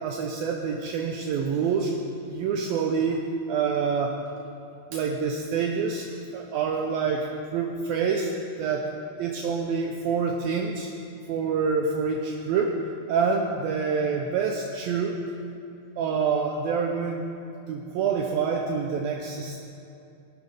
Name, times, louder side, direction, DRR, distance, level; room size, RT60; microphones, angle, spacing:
voice 1, 0.0-2.0 2.3-3.2 3.5-4.2 4.9-6.1 6.3-7.3 7.5-8.3 8.6-8.9 9.2-10.9 11.3-12.7 13.1-15.2 16.0-17.3 17.7-19.6, right 5 dB, 75° right, 1 dB, 2.5 m, -26 dB
24.0 x 11.5 x 3.6 m, 2.7 s
omnidirectional pair, 4.6 m